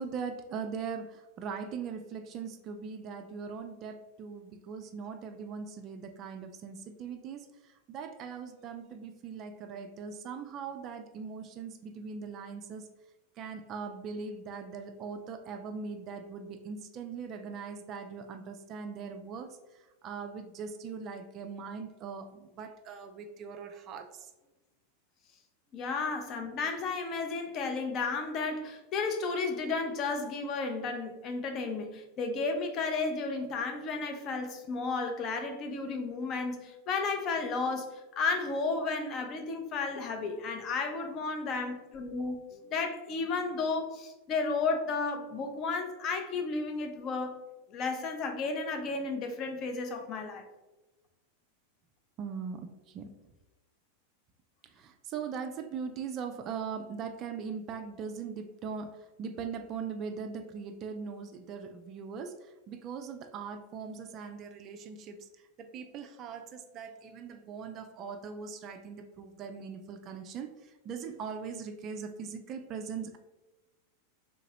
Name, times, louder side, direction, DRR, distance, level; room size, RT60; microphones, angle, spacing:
voice 1, 0.0-12.9 13.4-19.6 20.0-24.3 52.2-53.1 54.6-65.3 65.6-73.2, right 6 dB, 35° right, 0.3 m, -40 dB
voice 2, 25.7-47.4 47.7-50.5, left 4 dB, 35° left, 0.6 m, -33 dB
3.7 x 2.8 x 2.8 m
figure-of-eight pair, 90°, 0 cm